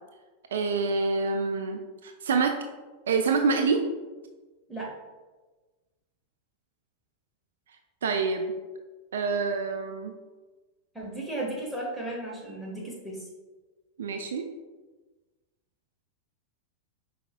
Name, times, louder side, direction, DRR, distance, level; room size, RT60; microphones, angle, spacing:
voice 1, 0.5-2.5 3.1-3.8 8.0-8.5 9.1-10.1 14.0-14.4, right 4 dB, 65° right, 5 dB, 0.3 m, -26 dB
voice 2, 10.9-13.2, right 1 dB, 5° left, -4 dB, 1.2 m, -35 dB
5.2 x 4.1 x 2.2 m, 1.2 s
figure-of-eight pair, 90°, 0 cm